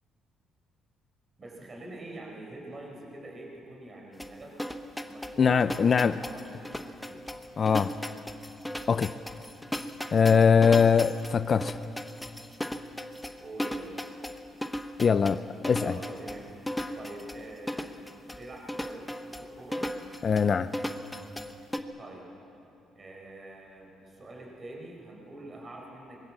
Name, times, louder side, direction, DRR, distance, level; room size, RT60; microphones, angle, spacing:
voice 1, 1.4-4.6 5.1-7.2 13.4-14.0 15.8-18.0 18.3-19.9 22.0-22.3 22.9-26.3, right 2 dB, 30° right, 4.7 m, -45 dB
sound 1, 4.2-21.8, left 1 dB, 5° left, 1.0 m, -36 dB
voice 2, 5.4-6.2 7.6-8.0 8.9-9.1 10.1-11.8 15.0-16.0 20.2-20.7, left 6 dB, 35° left, 0.5 m, -22 dB
24.5 x 21.5 x 7.4 m
cardioid pair, 135°, 0 cm